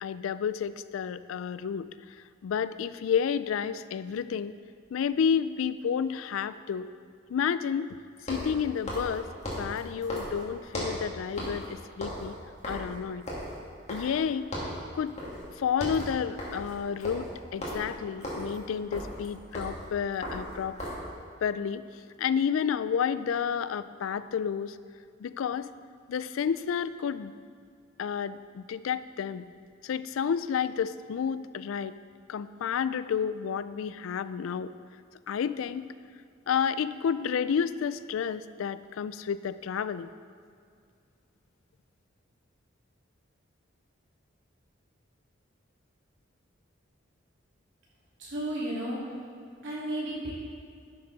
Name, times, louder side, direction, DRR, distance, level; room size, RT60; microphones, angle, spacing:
voice 1, 0.0-1.9 2.4-4.5 4.9-6.9 7.3-7.9 8.3-9.3 9.6-12.3 12.7-13.2 13.9-14.5 14.9-15.1 15.6-20.8 21.4-21.8 22.2-24.8 25.2-25.7 26.1-27.3 28.0-29.5 29.8-32.0 32.3-34.7 35.3-35.9 36.5-40.1, left 7 dB, 85° left, 15 dB, 0.3 m, -30 dB
sound 1, 4.9-5.0 8.2-11.1 11.4-11.7 11.9-14.3 14.5-14.8 15.2-15.4 15.7-21.1, equal, 35° left, 2.0 m, -37 dB
voice 2, 48.2-49.0 49.6-50.3, right 1 dB, 65° right, -5 dB, 2.6 m, -33 dB
11.0 x 6.9 x 4.0 m, 2.3 s
head